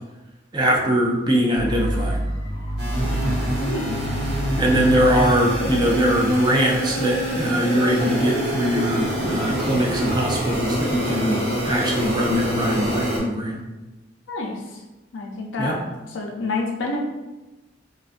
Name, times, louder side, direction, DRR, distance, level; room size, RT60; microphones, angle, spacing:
voice 1, 0.5-2.2 4.6-13.6 15.6-15.8, equal, 25° right, -1 dB, 0.3 m, -22 dB
sound 1, 1.6-7.5, equal, 25° left, 0.6 m, -29 dB
sound 2, 2.8-13.2, right 1 dB, 70° right, 0.9 m, -26 dB
voice 2, 3.2-4.0 14.3-14.5 15.1-15.8 16.1-17.0, left 3 dB, 85° left, 0 dB, 0.5 m, -28 dB
sound 3, 7.7-12.3, left 3 dB, 45° right, 0.7 m, -39 dB
2.5 x 2.2 x 2.4 m, 1.1 s
head